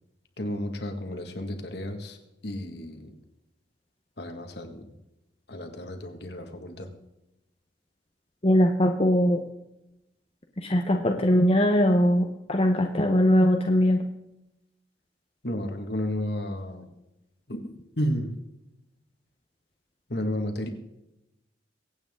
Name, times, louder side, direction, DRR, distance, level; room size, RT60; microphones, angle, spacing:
voice 1, 0.4-2.2 2.4-3.1 4.2-4.8 5.5-6.9 15.4-16.9 17.5-17.6 18.0-18.3 20.1-20.7, left 1 dB, 60° left, 5 dB, 1.9 m, -32 dB
voice 2, 8.4-9.4 10.6-14.0, equal, 30° left, 3 dB, 0.9 m, -21 dB
23.5 x 8.9 x 3.7 m, 0.92 s
head